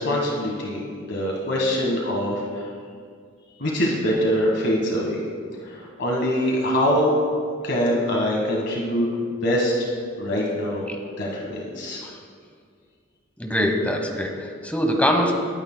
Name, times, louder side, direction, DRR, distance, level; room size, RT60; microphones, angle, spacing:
voice 1, 0.0-2.6 3.6-5.2 5.7-7.1 7.6-9.1 9.4-9.7 10.2-10.8 11.2-12.0, equal, 55° left, -2 dB, 1.5 m, -24 dB
voice 2, 13.4-15.3, equal, 5° left, 3 dB, 0.9 m, -23 dB
20.0 x 9.7 x 2.2 m, 2.1 s
head